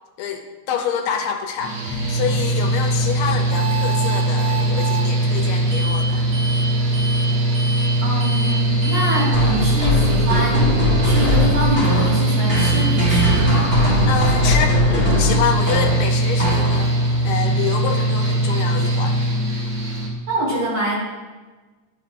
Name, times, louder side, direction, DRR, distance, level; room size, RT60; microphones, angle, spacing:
voice 1, 0.2-6.3 14.1-19.2, left 7 dB, 80° left, 4 dB, 1.9 m, -27 dB
Mechanical fan, 1.6-20.1, right 1 dB, 50° right, 1.2 m, -20 dB
sound 1, 3.5-5.1 5.7-6.1 6.3-6.7 6.9-7.3 7.5-7.9 8.2-8.6 8.8-9.2 12.5-12.9 13.1-13.3, right 4 dB, 80° right, 2.5 m, -29 dB
voice 2, 8.0-10.8 11.0-13.7 20.3-21.0, right 1 dB, 65° right, -7 dB, 3.2 m, -25 dB
sound 2, 9.3-17.1, left 1 dB, 25° right, 1.6 m, -21 dB
11.5 x 4.2 x 2.5 m, 1.3 s
omnidirectional pair, 3.3 m